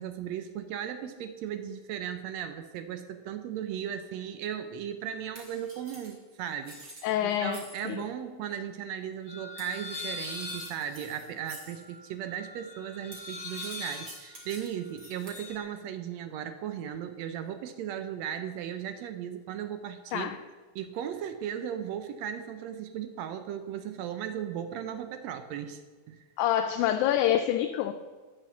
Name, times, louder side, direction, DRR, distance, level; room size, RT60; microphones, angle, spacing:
voice 1, 0.0-20.3 20.8-25.8 26.1-26.2, right 9 dB, 80° right, 9 dB, 1.6 m, -37 dB
sound 1, 5.3-8.0 9.6-11.9 13.1-15.5, right 1 dB, 30° right, 2.3 m, -49 dB
voice 2, 7.0-7.6 7.9-8.0 20.1-20.4 26.4-27.9, left 11 dB, 80° left, 7 dB, 1.9 m, -26 dB
sound 2, 9.3-15.6, left 2 dB, 55° left, 2.6 m, -42 dB
9.9 x 6.4 x 6.9 m, 1.3 s
omnidirectional pair, 3.6 m